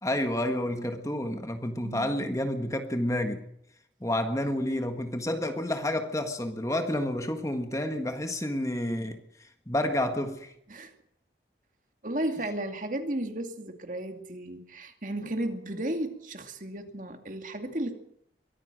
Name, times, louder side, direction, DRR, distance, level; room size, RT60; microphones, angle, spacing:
voice 1, 0.0-3.4 4.0-9.2 9.7-10.5, left 1 dB, 20° left, 1.6 m, -29 dB
voice 2, 12.0-17.9, right 1 dB, 45° right, 2.5 m, -34 dB
23.5 x 15.0 x 7.8 m
head